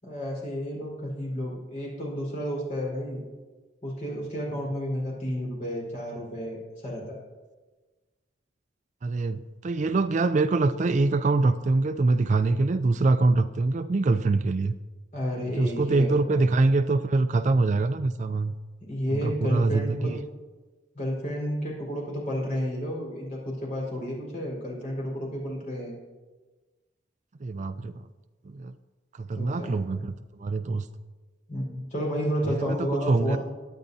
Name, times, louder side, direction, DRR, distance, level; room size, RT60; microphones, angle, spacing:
voice 1, 0.0-3.2 3.8-7.2 15.1-16.4 18.9-20.2 20.9-25.9 29.3-29.8 31.5-33.4, equal, 40° left, -3 dB, 4.3 m, -31 dB
voice 2, 9.0-14.7 15.6-18.5 19.1-20.2 27.4-28.1 28.5-28.7 29.1-30.9 32.5-33.4, right 3 dB, 40° right, 11 dB, 0.3 m, -24 dB
22.0 x 9.0 x 2.7 m, 1.3 s
head